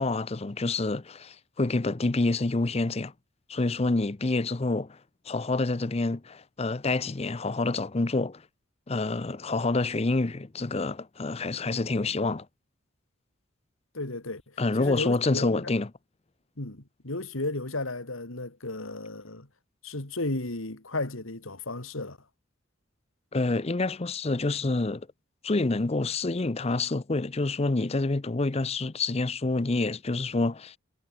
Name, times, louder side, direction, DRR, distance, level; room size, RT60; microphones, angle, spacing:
voice 1, 0.0-3.1 3.5-5.0 5.3-8.4 8.9-12.5 14.6-15.9 23.3-25.1 25.4-30.8, left 2 dB, 30° left, 0.6 m, -27 dB
voice 2, 13.9-14.4 14.8-15.6 16.6-19.5 19.8-22.2, left 2 dB, 90° left, 2.8 m, -34 dB
head